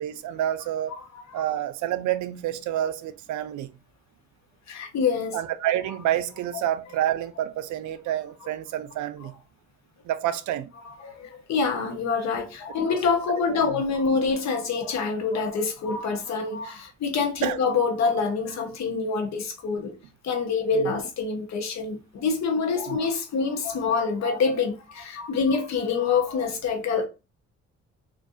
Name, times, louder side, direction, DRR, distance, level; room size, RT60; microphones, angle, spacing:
voice 1, 0.0-1.0 1.3-3.7 5.3-9.4 10.0-10.7 12.9-13.0 13.5-13.8 17.4-17.6 20.8-20.9 22.9-23.0, right 12 dB, 75° right, 0.4 m, -28 dB
voice 2, 0.9-1.4 4.7-5.4 11.0-19.9 20.2-27.1, left 5 dB, 65° left, 0.9 m, -26 dB
2.4 x 2.3 x 2.6 m
cardioid pair, 90°, 30 cm